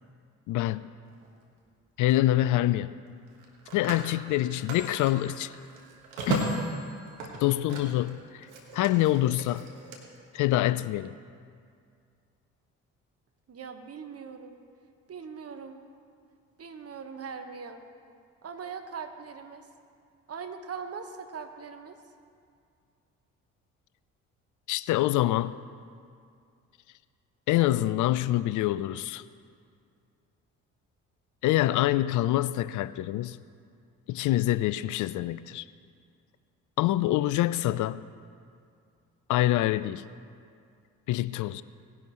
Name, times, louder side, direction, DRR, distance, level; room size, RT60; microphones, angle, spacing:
voice 1, 0.5-0.9 2.0-2.9 3.7-5.5 6.3-6.5 7.4-8.5 8.7-9.7 10.3-11.1 24.7-25.6 27.5-29.2 31.4-33.4 34.1-35.6 36.8-38.0 39.3-40.0 41.1-41.6, left 15 dB, 50° left, 16 dB, 0.5 m, -26 dB
Telephone, 1.1-1.3 3.3-8.1 8.4-10.0, right 2 dB, 80° right, 1.5 m, -36 dB
voice 2, 13.5-14.6 15.1-15.8 16.6-17.8 18.4-19.7 20.3-22.0, right 6 dB, 40° right, 6 dB, 1.3 m, -40 dB
18.0 x 10.5 x 3.1 m, 2.3 s
figure-of-eight pair, 45°, 39 cm